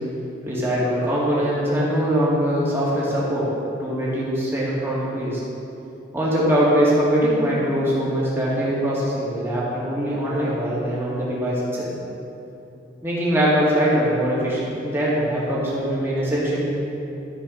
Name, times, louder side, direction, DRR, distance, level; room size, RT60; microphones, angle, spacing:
voice 1, 0.4-3.4 3.8-5.3 6.1-11.9 13.0-16.6, equal, 15° right, -8 dB, 2.3 m, -22 dB
13.5 x 5.1 x 5.5 m, 2.9 s
head